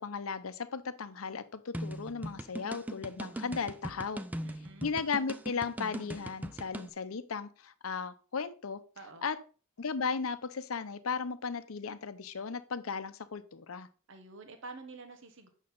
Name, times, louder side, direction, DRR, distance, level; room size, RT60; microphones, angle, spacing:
voice 1, 0.0-4.2 4.8-8.8 9.2-9.4 9.8-13.9, left 5 dB, 85° left, 0.7 m, -36 dB
sound 1, 1.7-6.9, right 1 dB, 10° right, 0.5 m, -40 dB
voice 2, 4.4-4.9 9.0-9.3 14.1-15.5, right 3 dB, 65° right, 1.2 m, -48 dB
8.7 x 6.3 x 3.8 m
head